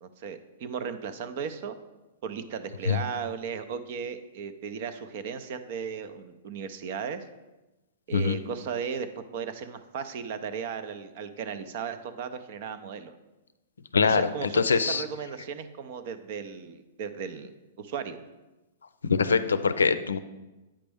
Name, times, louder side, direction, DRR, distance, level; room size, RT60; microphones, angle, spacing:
voice 1, 0.0-1.8 2.2-7.2 8.1-13.1 14.0-18.2, right 6 dB, 55° right, 10 dB, 0.6 m, -36 dB
voice 2, 13.9-15.0 19.0-20.2, left 5 dB, 85° left, 12 dB, 0.4 m, -23 dB
8.8 x 5.1 x 3.5 m, 1.1 s
hypercardioid pair, 115°, 0 cm